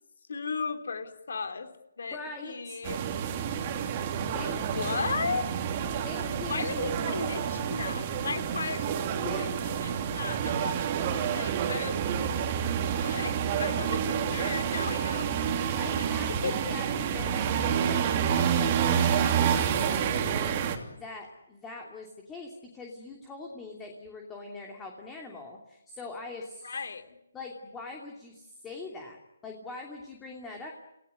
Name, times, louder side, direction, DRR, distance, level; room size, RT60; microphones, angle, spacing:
voice 1, 0.3-1.7 2.0-2.2 2.4-3.0 4.5-5.4 6.5-8.8 9.4-10.9 11.3-12.0 12.9-15.4 16.0-16.1 16.4-16.6 26.6-27.0, left 5 dB, 65° left, 7 dB, 3.6 m, -35 dB
voice 2, 2.1-2.8 4.2-5.0 6.0-6.9 9.2-9.7 15.7-20.5 20.9-26.8 27.3-29.2 29.4-30.7, left 3 dB, 10° left, 1 dB, 2.9 m, -42 dB
sound 1, 2.8-20.8, right 8 dB, 30° right, 3.1 m, -29 dB
28.5 x 18.0 x 9.6 m, 0.88 s
hypercardioid pair, 155°, 0 cm